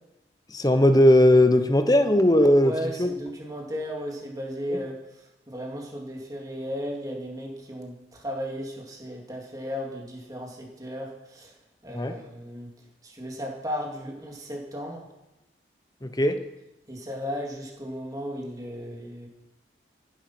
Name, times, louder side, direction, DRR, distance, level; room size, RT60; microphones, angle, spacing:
voice 1, 0.5-2.7 3.0-3.1 4.7-4.8 11.9-12.1 16.0-16.4, left 1 dB, 20° left, 9 dB, 1.0 m, -18 dB
voice 2, 2.6-11.5 11.8-12.7 13.0-15.0 16.9-19.3, equal, 20° right, -1 dB, 2.9 m, -35 dB
14.5 x 11.5 x 6.1 m, 0.94 s
head